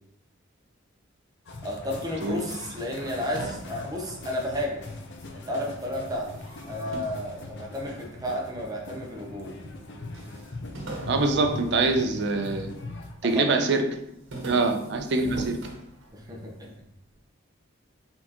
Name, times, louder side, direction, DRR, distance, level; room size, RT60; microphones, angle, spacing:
sound 1, 1.5-13.1, left 2 dB, 60° left, 0.6 m, -41 dB
voice 1, 1.6-4.8 5.3-6.3 6.7-9.5 13.2-13.6 14.5-14.8 16.1-16.9, left 1 dB, 20° right, -1 dB, 0.7 m, -32 dB
sound 2, 2.8-5.4 5.7-8.2 8.8-9.5 9.8-9.9 10.1-12.7 13.1-13.6 13.9-16.5, right 2 dB, 70° right, 1.1 m, -40 dB
voice 2, 11.1-12.7 13.2-14.0 14.4-15.6, right 3 dB, 55° right, 6 dB, 0.5 m, -24 dB
4.2 x 3.8 x 2.9 m, 0.79 s
head